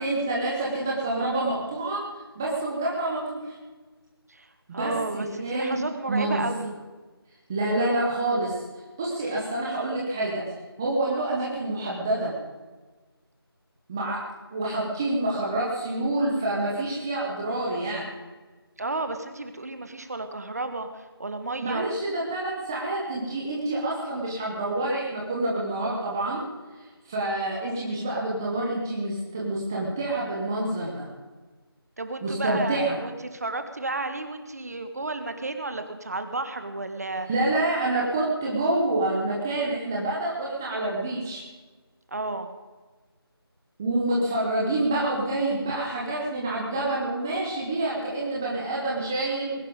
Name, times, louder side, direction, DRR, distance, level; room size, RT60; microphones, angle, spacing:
voice 1, 0.0-2.0 2.3-3.5 4.7-6.5 7.5-8.6 9.0-10.5 10.8-12.3 13.9-14.2 14.5-18.1 21.6-26.5 26.8-31.1 32.2-33.0 37.2-41.4 43.8-49.5, right 2 dB, 5° right, -5 dB, 0.9 m, -27 dB
voice 2, 4.7-6.7 18.8-21.9 32.0-37.3 42.1-42.5, right 2 dB, 40° right, 8 dB, 1.6 m, -32 dB
20.0 x 11.0 x 5.2 m, 1.3 s
figure-of-eight pair, 170°, 13 cm